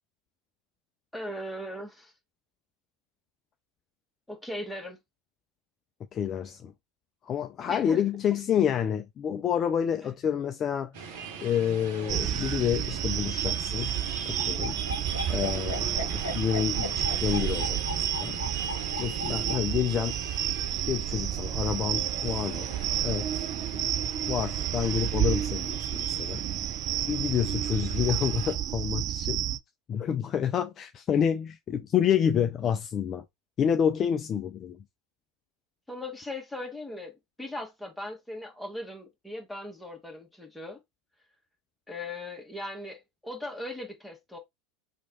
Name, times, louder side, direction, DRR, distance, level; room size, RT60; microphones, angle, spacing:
voice 1, 1.1-2.1 4.3-5.0 7.7-8.0 35.9-40.8 41.9-44.4, left 1 dB, 5° left, 1.3 m, -38 dB
voice 2, 6.1-6.7 7.2-11.1 11.4-13.9 14.3-14.8 15.3-17.8 18.2-18.4 19.0-20.2 20.8-22.7 23.0-23.5 23.7-23.9 24.3-26.5 27.1-29.4 29.9-33.2 33.6-34.8, left 8 dB, 35° left, 0.4 m, -28 dB
sound 1, 10.9-28.5, right 5 dB, 60° right, 1.0 m, -40 dB
sound 2, 12.1-29.6, right 11 dB, 45° right, 0.3 m, -31 dB
sound 3, 14.4-19.6, left 3 dB, 90° left, 0.7 m, -36 dB
3.1 x 2.4 x 4.1 m
hypercardioid pair, 80°, 0 cm